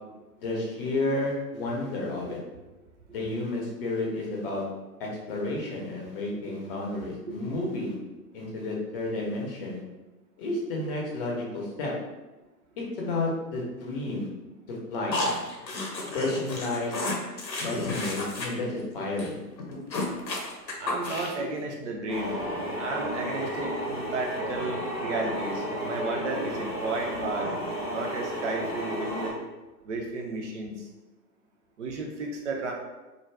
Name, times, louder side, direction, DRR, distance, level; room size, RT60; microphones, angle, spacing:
voice 1, 0.4-2.4 3.1-4.6 5.0-8.0 8.3-9.8 10.4-11.9 12.8-14.3 14.7-15.2 16.1-16.9 17.6-19.4, left 2 dB, 35° left, -2 dB, 0.8 m, -31 dB
sound 1, 15.1-18.5 18.8-18.9 19.2-19.3 19.6-21.5, left 2 dB, 85° left, 0.8 m, -32 dB
voice 2, 20.8-22.4 22.7-27.5 27.9-29.4 29.8-30.9 31.8-32.7, right 3 dB, 45° right, 1 dB, 0.6 m, -33 dB
sound 2, 22.1-29.3, equal, 5° right, 0.8 m, -32 dB
2.5 x 2.2 x 3.3 m, 1.1 s
figure-of-eight pair, 115°, 50 cm